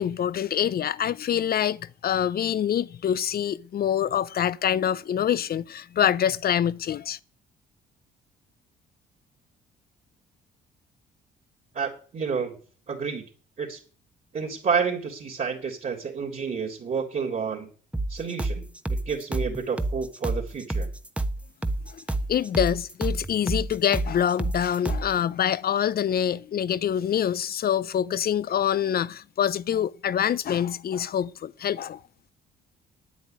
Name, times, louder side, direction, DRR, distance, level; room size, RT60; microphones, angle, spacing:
voice 1, 0.0-7.2 21.9-22.0 22.3-32.0, left 9 dB, 50° left, 0.7 m, -25 dB
voice 2, 11.7-12.6 12.9-13.2 13.6-13.8 14.3-17.7 18.1-18.7 19.1-20.9, right 6 dB, 45° right, 3.6 m, -29 dB
sound 1, 17.9-25.2, right 2 dB, 5° right, 1.2 m, -29 dB
9.3 x 8.5 x 9.4 m
supercardioid pair, 65°, 19 cm